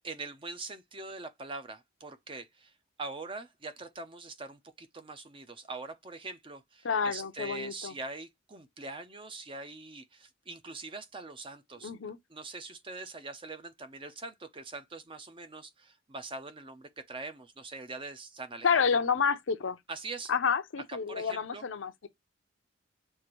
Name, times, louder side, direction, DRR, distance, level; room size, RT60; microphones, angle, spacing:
voice 1, 0.0-2.7 3.0-11.9 12.3-18.8 19.9-20.3 21.1-21.6, right 3 dB, 25° right, 0.5 m, -43 dB
voice 2, 6.8-7.9 11.8-12.2 18.6-19.8 20.3-21.9, left 6 dB, 65° left, 0.6 m, -29 dB
6.4 x 2.6 x 3.0 m
head